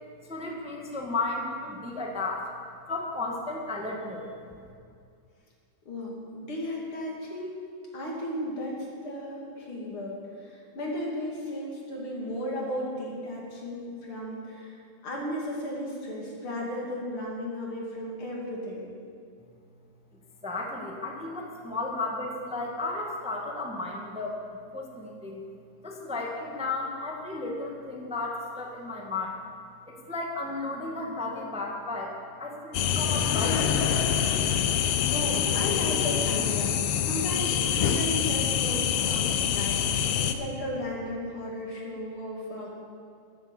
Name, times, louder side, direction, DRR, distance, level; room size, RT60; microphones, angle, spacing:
voice 1, 0.2-2.5 2.9-4.3 20.4-25.4 25.8-29.5 29.9-32.1 32.4-33.8, left 3 dB, 5° right, 0 dB, 0.5 m, -34 dB
voice 2, 5.9-7.6 7.9-18.9 35.1-42.7, left 1 dB, 45° left, -3 dB, 3.4 m, -35 dB
sound 1, 32.7-40.3, left 9 dB, 80° left, 1.3 m, -25 dB
12.0 x 12.0 x 7.3 m, 2.3 s
omnidirectional pair, 3.5 m